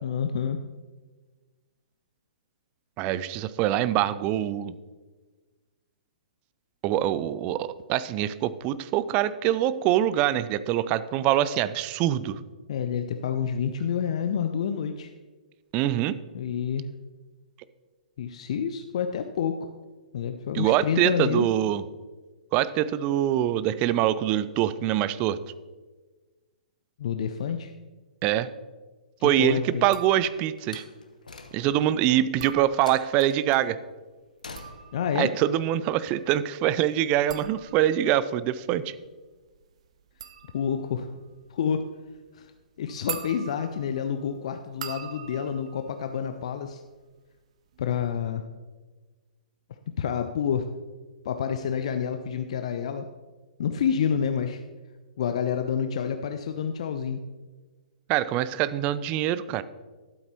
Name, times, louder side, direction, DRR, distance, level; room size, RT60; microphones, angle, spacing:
voice 1, 0.0-0.6 12.7-15.1 16.3-16.9 18.2-19.7 20.1-21.5 27.0-27.7 29.2-29.9 34.9-35.3 40.5-41.1 41.5-41.8 42.3-42.5 42.8-46.8 47.8-48.4 50.0-50.7 51.2-53.1 53.6-54.6 55.2-57.2, left 7 dB, 50° left, 7 dB, 0.5 m, -28 dB
voice 2, 3.0-4.7 6.8-12.4 15.7-16.2 20.5-21.8 22.5-25.4 28.2-28.5 29.2-30.8 31.5-33.8 35.2-38.9 58.1-59.6, right 12 dB, 25° right, 15 dB, 0.3 m, -24 dB
sound 1, 29.8-30.7 32.2-33.3 34.3-47.0 47.3-47.8, right 8 dB, 50° right, 0.7 m, -44 dB
Slam, 30.6-31.9 32.8-33.7 34.4-35.1, left 3 dB, 70° left, 0.9 m, -45 dB
12.0 x 8.0 x 3.0 m, 1.3 s
figure-of-eight pair, 115°, 4 cm